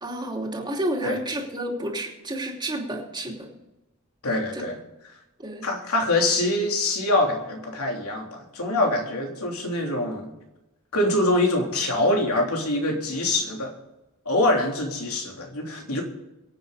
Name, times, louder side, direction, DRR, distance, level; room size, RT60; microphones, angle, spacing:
voice 1, 0.0-3.5 4.5-4.6 5.4-5.7, right 1 dB, 20° right, 0 dB, 2.8 m, -30 dB
voice 2, 4.2-4.8 5.6-10.3 10.9-13.7 14.2-16.0, left 1 dB, 80° left, 1 dB, 3.2 m, -24 dB
23.5 x 8.8 x 4.0 m, 0.99 s
head